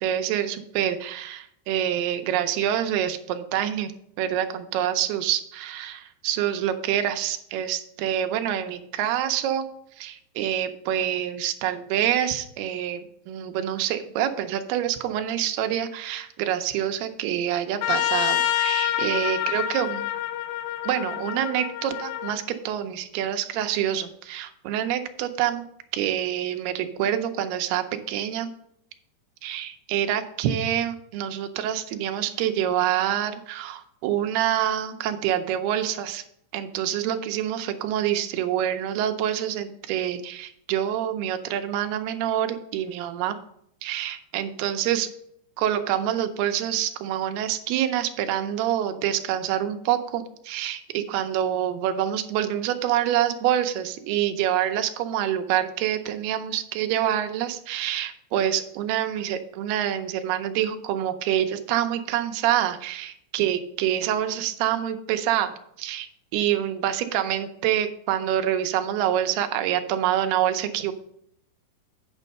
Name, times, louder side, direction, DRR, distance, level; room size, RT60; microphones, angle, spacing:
voice 1, 0.0-3.9 4.2-9.7 10.0-20.1 20.8-25.6 25.9-28.5 29.4-36.2 36.5-43.4 43.8-45.1 45.6-65.5 65.8-66.1 66.3-70.9, right 11 dB, 80° right, 7 dB, 2.5 m, -26 dB
Trumpet, 17.8-22.4, left 12 dB, 85° left, 2.8 m, -27 dB
9.1 x 5.5 x 5.3 m, 0.71 s
omnidirectional pair, 4.9 m